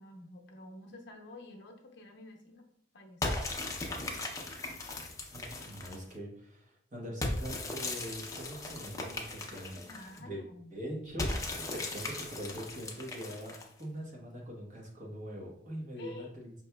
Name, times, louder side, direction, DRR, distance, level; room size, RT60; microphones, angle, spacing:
voice 1, 0.0-2.6 2.9-3.5 9.8-10.7 16.0-16.3, left 2 dB, 70° left, 1 dB, 0.7 m, -49 dB
sound 1, 3.2-6.1 7.2-10.2 11.2-13.8, left 2 dB, 20° left, 0.5 m, -38 dB
voice 2, 5.3-10.4 10.7-16.5, equal, 45° right, -2 dB, 1.0 m, -43 dB
5.1 x 2.9 x 2.2 m, 0.71 s
head